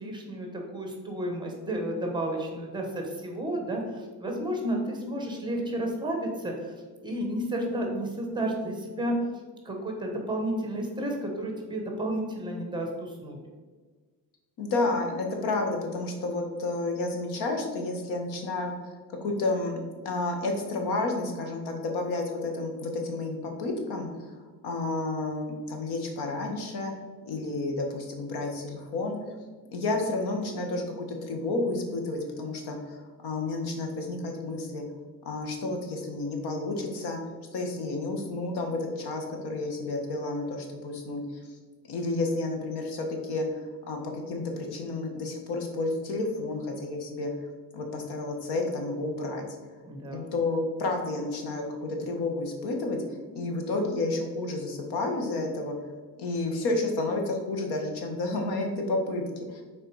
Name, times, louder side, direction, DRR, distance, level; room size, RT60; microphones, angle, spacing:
voice 1, 0.0-6.7 7.0-9.1 9.6-13.4 49.8-50.3, right 1 dB, 10° right, 2 dB, 1.0 m, -32 dB
voice 2, 14.6-18.7 19.2-19.8 20.0-24.3 24.6-26.9 27.2-29.2 29.7-34.8 35.2-37.2 37.5-41.2 41.8-47.3 47.7-49.4 50.1-53.0 53.3-55.7 56.2-59.6, left 2 dB, 80° left, 3 dB, 1.4 m, -31 dB
6.5 x 4.3 x 4.7 m, 1.4 s
cardioid pair, 175°, 39 cm